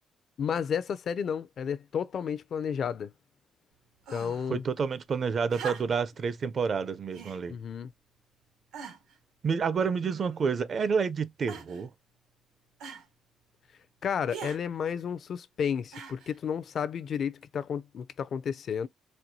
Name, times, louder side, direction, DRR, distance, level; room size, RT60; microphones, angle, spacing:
voice 1, 0.4-3.1 4.1-4.6 7.5-7.9 14.0-18.9, left 7 dB, 60° left, 0.4 m, -32 dB
sound 1, 4.0-4.5 5.5-6.2 7.1-7.4 8.2-8.3 8.7-9.2 10.0-10.6 11.5-11.9 12.8-13.1 14.3-14.6 15.9-16.4 17.4-17.5, right 6 dB, 90° right, 1.0 m, -42 dB
voice 2, 4.5-7.6 9.4-11.9, right 5 dB, 50° right, 0.5 m, -29 dB
4.3 x 2.2 x 2.6 m
cardioid pair, 90°, 0 cm